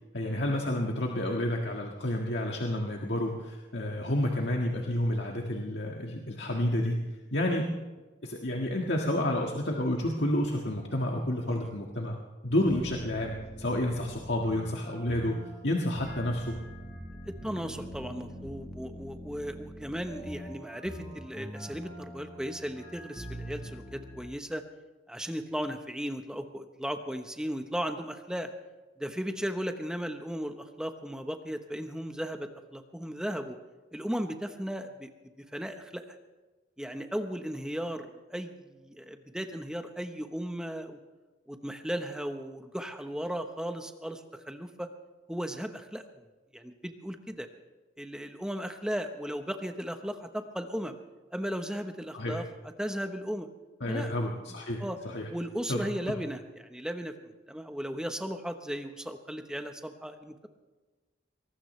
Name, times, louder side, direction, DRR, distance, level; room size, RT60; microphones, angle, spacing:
voice 1, 0.1-7.0 7.3-7.7 8.2-12.2 12.4-15.4 15.6-16.6 52.1-52.4 53.8-55.3 55.7-55.8, left 1 dB, 70° left, 0 dB, 1.7 m, -30 dB
sound 1, 12.7-24.2, equal, 20° left, 4.3 m, -44 dB
voice 2, 17.2-24.6 25.1-28.5 29.0-33.6 33.9-35.1 35.4-36.2 36.8-41.0 41.5-44.9 45.3-46.2 46.5-47.5 48.0-51.0 51.3-52.5 52.8-53.5 53.9-54.1 54.8-55.0 55.3-60.5, equal, 5° right, 6 dB, 1.0 m, -36 dB
22.5 x 19.0 x 3.3 m, 1.2 s
head